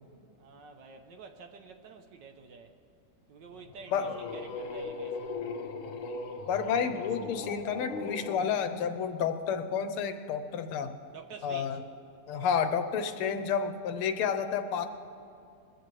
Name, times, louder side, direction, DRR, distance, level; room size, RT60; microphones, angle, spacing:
voice 1, 0.4-2.7 3.3-5.4 11.1-11.8, right 5 dB, 65° right, 6 dB, 1.4 m, -49 dB
sound 1, 3.5-8.4, left 3 dB, 65° left, 1.8 m, -39 dB
voice 2, 6.5-10.9 11.4-11.8 12.3-14.9, left 7 dB, 85° left, 8 dB, 1.7 m, -30 dB
21.0 x 15.0 x 3.2 m, 2.6 s
omnidirectional pair, 2.4 m